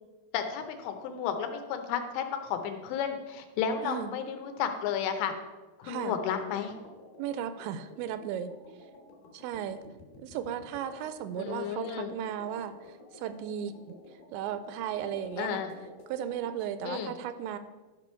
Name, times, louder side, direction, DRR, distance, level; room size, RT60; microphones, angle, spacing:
voice 1, 0.3-5.3 5.8-6.7 11.4-12.1 15.4-15.7 16.8-17.1, left 8 dB, 85° left, 6 dB, 3.0 m, -32 dB
voice 2, 3.8-4.1 5.8-6.2 7.2-8.5 9.3-9.8 10.2-15.6 16.1-17.6, right 9 dB, 85° right, 11 dB, 2.8 m, -36 dB
sound 1, 5.9-16.7, left 2 dB, 65° left, 3.0 m, -52 dB
12.5 x 5.9 x 4.4 m, 1.2 s
omnidirectional pair, 5.0 m